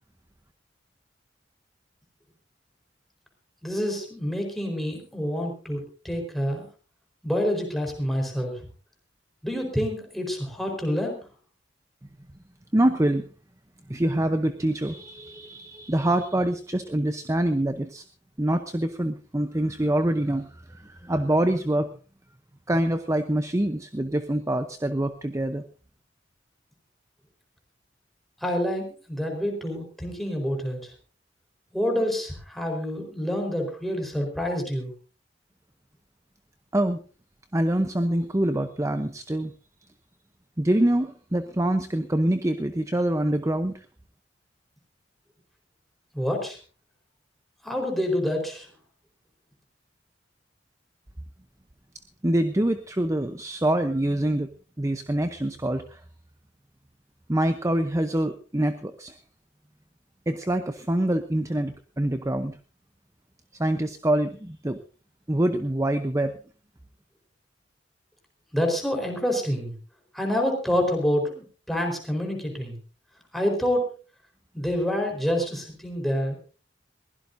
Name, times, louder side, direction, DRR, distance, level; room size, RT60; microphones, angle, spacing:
voice 1, 3.6-6.7 7.2-8.7 9.4-11.2 28.4-30.8 31.7-34.9 46.1-46.6 47.6-48.7 68.5-69.7 70.1-72.7 73.3-73.8 74.5-76.4, equal, ahead, 1 dB, 4.4 m, -27 dB
voice 2, 12.7-13.3 13.9-18.0 18.4-21.9 22.7-25.6 36.7-37.0 37.5-39.5 40.6-43.9 52.2-54.5 54.8-56.0 57.3-59.2 60.3-62.6 63.6-64.8 65.3-66.4, right 1 dB, 15° right, 9 dB, 0.8 m, -25 dB
22.0 x 16.5 x 2.7 m, 0.36 s
head